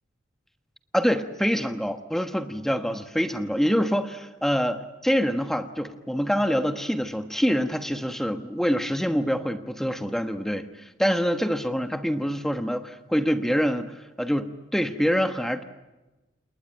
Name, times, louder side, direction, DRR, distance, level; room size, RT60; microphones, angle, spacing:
voice 1, 0.9-15.6, equal, ahead, 7 dB, 1.2 m, -25 dB
28.5 x 20.0 x 9.0 m, 1.1 s
head